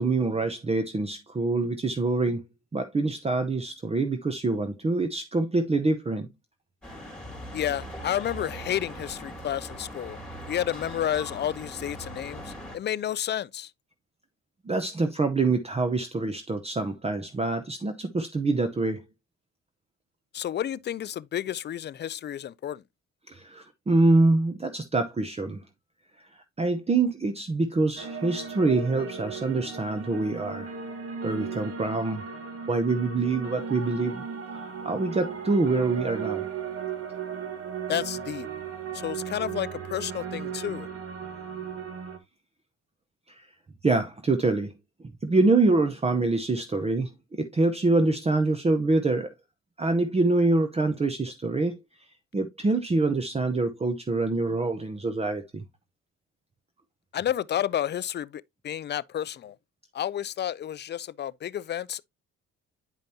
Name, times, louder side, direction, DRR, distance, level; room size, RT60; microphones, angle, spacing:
voice 1, 0.0-2.4 2.7-6.3 14.7-19.0 23.3-25.6 26.6-30.7 31.2-32.2 32.7-34.2 34.5-36.4 43.3-43.5 43.8-44.7 45.2-47.1 47.4-49.3 49.8-51.8 52.3-55.6, right 3 dB, 20° right, 0.7 m, -25 dB
sound 1, 6.8-12.8, equal, 5° left, 3.1 m, -40 dB
voice 2, 7.5-10.2 10.5-13.7 20.3-22.8 37.9-38.5 38.9-40.9 57.1-59.6 59.9-62.1, left 10 dB, 35° left, 0.4 m, -31 dB
sound 2, 28.0-42.2, right 6 dB, 50° right, 1.5 m, -36 dB
9.2 x 5.1 x 2.7 m
cardioid pair, 90°, 30 cm